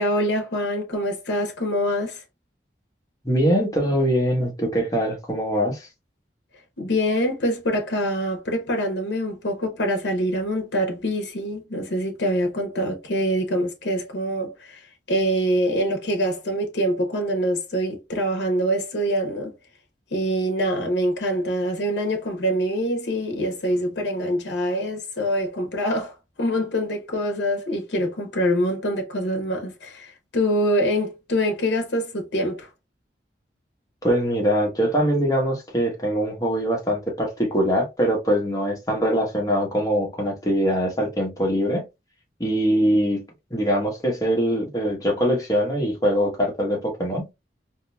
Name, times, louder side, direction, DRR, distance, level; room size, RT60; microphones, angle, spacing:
voice 1, 0.0-2.2 6.8-19.5 20.1-32.7, equal, 75° left, 0.8 m, -25 dB
voice 2, 3.2-5.9 34.0-41.9 42.4-43.2 43.5-47.2, equal, 20° left, 1.1 m, -22 dB
3.8 x 2.7 x 2.2 m
head